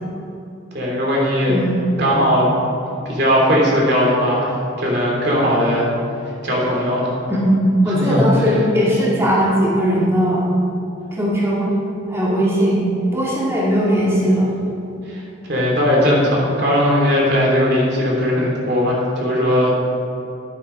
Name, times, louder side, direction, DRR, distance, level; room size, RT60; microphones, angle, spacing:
voice 1, 0.7-1.5 2.0-2.5 3.0-4.5 4.8-5.9 6.4-7.1 7.9-8.5 15.1-15.2 15.5-19.7, equal, 60° right, -3 dB, 2.9 m, -18 dB
voice 2, 7.3-10.5 11.1-11.7 12.1-14.5, equal, 15° right, -7 dB, 2.0 m, -18 dB
12.0 x 9.4 x 5.2 m, 2.7 s
head